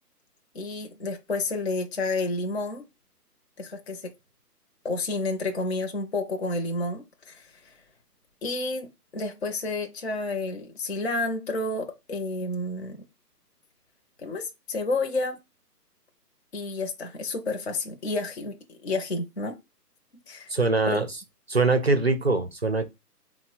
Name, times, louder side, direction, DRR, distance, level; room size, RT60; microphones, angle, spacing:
voice 1, 0.5-2.8 3.6-4.1 4.8-7.7 8.4-13.0 14.2-15.4 16.5-19.6 20.3-20.5 20.9-21.0, left 2 dB, 40° left, 0.6 m, -30 dB
voice 2, 20.5-21.1 21.5-22.9, right 3 dB, 40° right, 0.5 m, -23 dB
4.1 x 2.1 x 4.3 m
hypercardioid pair, 170°, 48 cm